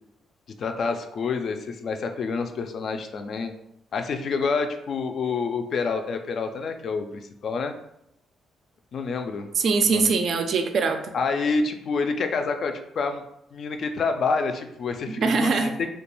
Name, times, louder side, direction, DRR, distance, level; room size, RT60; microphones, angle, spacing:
voice 1, 0.6-3.5 3.9-7.7 8.9-9.5 9.9-10.1 11.1-13.2 13.5-16.0, left 4 dB, 60° left, 6 dB, 0.3 m, -28 dB
voice 2, 9.5-11.1 15.2-15.8, right 4 dB, 60° right, 7 dB, 0.3 m, -22 dB
2.4 x 2.2 x 3.0 m, 0.80 s
cardioid pair, 90°, 0 cm